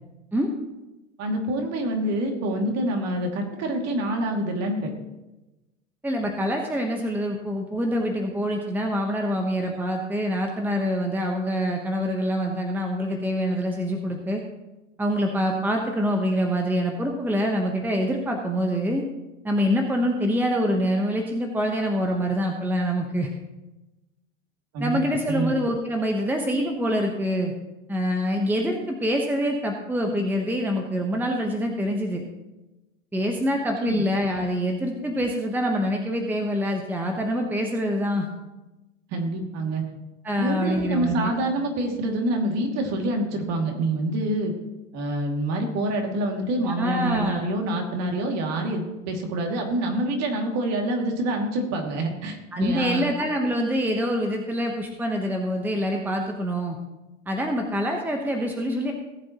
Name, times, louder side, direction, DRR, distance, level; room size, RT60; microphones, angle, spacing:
voice 1, 1.2-4.9 24.7-25.0 25.3-25.5 33.8-34.0 39.1-39.8 40.4-44.5 44.9-53.1, right 1 dB, 40° right, 2 dB, 2.5 m, -26 dB
voice 2, 6.0-14.4 15.0-19.0 19.4-23.3 24.8-27.5 27.9-32.2 33.1-38.3 40.2-41.3 46.6-47.5 52.5-56.8 57.3-58.9, equal, 5° right, 2 dB, 1.1 m, -25 dB
18.5 x 7.7 x 3.0 m, 1.0 s
hypercardioid pair, 100°, 38 cm